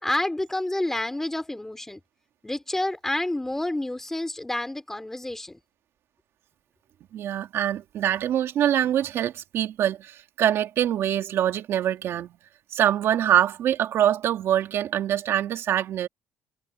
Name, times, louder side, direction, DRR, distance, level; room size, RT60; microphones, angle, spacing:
voice 1, 0.0-2.0 2.4-5.6, left 1 dB, 10° left, 3.7 m, -29 dB
voice 2, 7.1-12.3 12.7-16.1, right 10 dB, 60° right, 2.3 m, -24 dB
cardioid pair, 135°, 5 cm